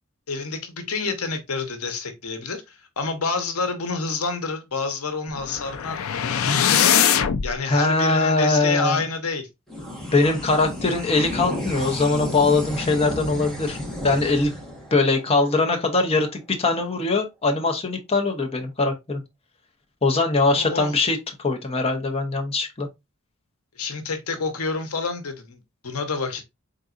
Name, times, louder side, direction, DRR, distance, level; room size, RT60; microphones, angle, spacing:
voice 1, 0.3-6.4 7.4-9.5 20.5-20.9 23.8-26.4, left 4 dB, 85° left, 0.9 m, -28 dB
sound 1, 5.3-7.5, left 8 dB, 70° left, 0.4 m, -21 dB
voice 2, 7.7-9.1 10.1-13.8 14.0-14.5 14.9-19.2 20.0-22.9, left 3 dB, 30° left, 0.7 m, -22 dB
sound 2, 9.7-16.4, left 1 dB, ahead, 1.2 m, -33 dB
3.9 x 3.7 x 2.4 m
head